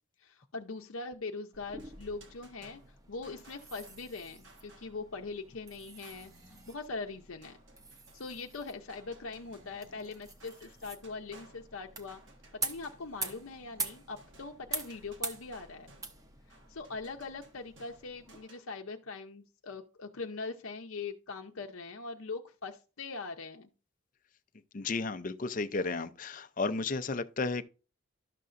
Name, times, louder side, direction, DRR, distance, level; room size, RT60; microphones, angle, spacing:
voice 1, 0.2-2.8 3.1-6.3 6.7-7.6 8.1-12.2 12.6-15.9 16.5-23.7, left 4 dB, 75° left, 0.7 m, -42 dB
sound 1, 1.5-18.4, right 3 dB, 15° right, 0.8 m, -45 dB
sound 2, 1.8-5.1 6.0-6.5 7.4-10.1 10.4-18.6, right 2 dB, 55° right, 1.6 m, -60 dB
sound 3, 5.5-6.8 9.1-10.4 12.9-14.0, right 1 dB, 90° right, 2.2 m, -63 dB
voice 2, 24.7-27.6, left 3 dB, 40° left, 0.5 m, -33 dB
12.0 x 6.7 x 2.5 m
head